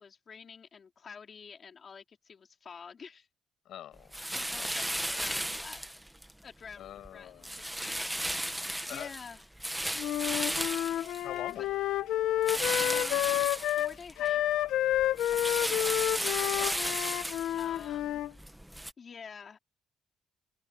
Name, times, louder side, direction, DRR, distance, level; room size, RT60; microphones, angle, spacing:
voice 1, 0.0-3.3 4.3-5.8 6.4-9.4 12.6-14.4 14.8-15.0 15.3-17.1 17.6-18.2 19.0-19.6, left 6 dB, 35° left, 3.8 m, -49 dB
voice 2, 3.7-4.1 4.5-5.2 6.8-7.6 8.6-9.1 11.2-11.8 16.6-16.8, left 11 dB, 65° left, 7.0 m, -45 dB
sound 1, 4.1-6.3 6.7-7.1 7.4-11.7 12.4-14.3 14.6-18.9, right 1 dB, 5° right, 0.8 m, -35 dB
Wind instrument woodwind instrument, 10.0-18.3, left 13 dB, 80° left, 0.8 m, -30 dB
open air
cardioid pair, 165°, 0 cm